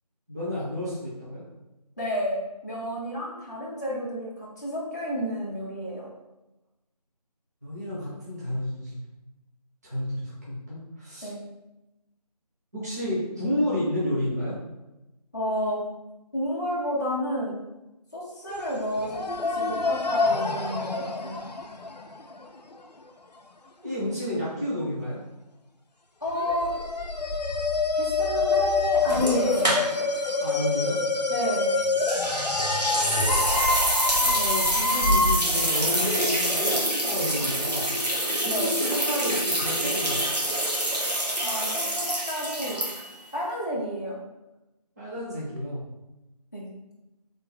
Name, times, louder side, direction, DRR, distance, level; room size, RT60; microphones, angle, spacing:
voice 1, 0.3-1.4 7.6-9.0 9.8-11.3 12.7-14.5 23.8-25.2 30.4-31.0 34.2-37.9 38.4-40.3 45.0-45.8, equal, 25° right, -9 dB, 0.9 m, -31 dB
voice 2, 2.0-2.4 2.6-6.1 11.2-11.4 15.3-15.8 16.3-17.6 18.1-19.2 19.5-21.4 26.2-26.7 28.0-29.6 31.3-31.7 38.5-38.7 41.4-42.8 43.3-44.2 46.5-46.7, equal, 25° left, -7 dB, 0.7 m, -30 dB
sound 1, 18.5-18.6 19.0-22.5 26.4-35.4, left 3 dB, 80° left, 0.5 m, -26 dB
sound 2, 29.1-30.2 30.5-30.6 32.0-43.3, right 1 dB, 80° right, 1.2 m, -26 dB
3.4 x 2.5 x 3.7 m, 0.99 s
figure-of-eight pair, 165°, 21 cm